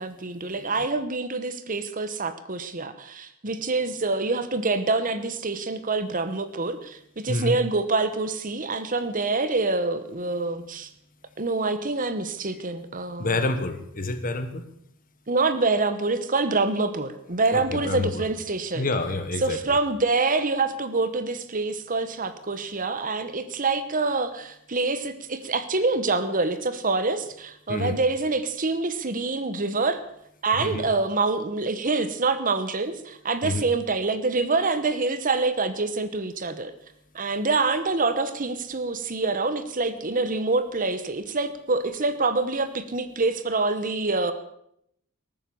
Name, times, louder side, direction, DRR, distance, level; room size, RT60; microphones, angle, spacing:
voice 1, 0.0-7.0 7.2-10.9 11.4-13.3 15.3-18.9 19.4-30.0 30.4-36.7 37.1-44.3, right 3 dB, 40° right, 11 dB, 1.1 m, -26 dB
voice 2, 7.3-7.6 13.2-14.7 17.5-18.3 18.7-19.8 27.7-28.0 30.5-30.9 33.4-33.7, left 2 dB, 40° left, 10 dB, 1.4 m, -28 dB
20.0 x 9.1 x 7.0 m, 0.74 s
head